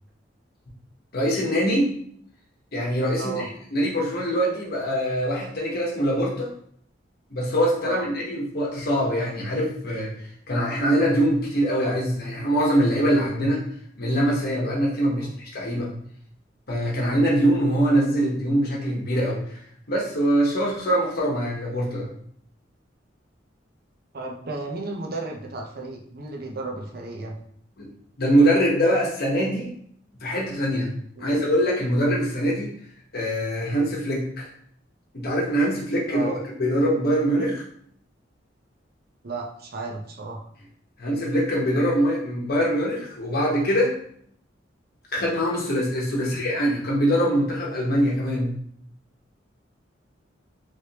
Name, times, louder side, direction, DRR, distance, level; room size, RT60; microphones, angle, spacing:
voice 1, 1.1-1.9 2.7-3.4 3.7-6.5 7.3-10.1 10.5-13.6 14.0-15.3 15.5-15.9 16.7-19.4 19.9-22.1 27.8-27.9 28.2-29.7 30.2-30.9 31.2-32.7 33.1-34.5 35.1-37.6 41.0-44.0 45.1-48.5, equal, 55° left, -3 dB, 1.0 m, -23 dB
voice 2, 3.1-3.5 7.8-8.1 15.1-15.3 24.1-27.4 31.2-31.4 36.1-36.4 39.2-40.4 46.1-46.4, right 3 dB, 55° right, 1 dB, 0.6 m, -34 dB
3.3 x 3.1 x 2.8 m, 0.63 s
head